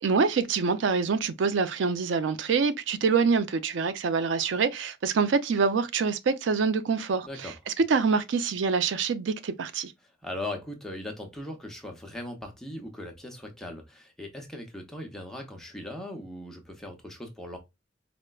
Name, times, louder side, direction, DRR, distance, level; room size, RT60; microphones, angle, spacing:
voice 1, 0.0-9.9, right 5 dB, 85° right, 0.4 m, -26 dB
voice 2, 7.2-7.5 10.2-17.6, left 1 dB, 5° left, 0.6 m, -39 dB
4.3 x 2.1 x 2.2 m
head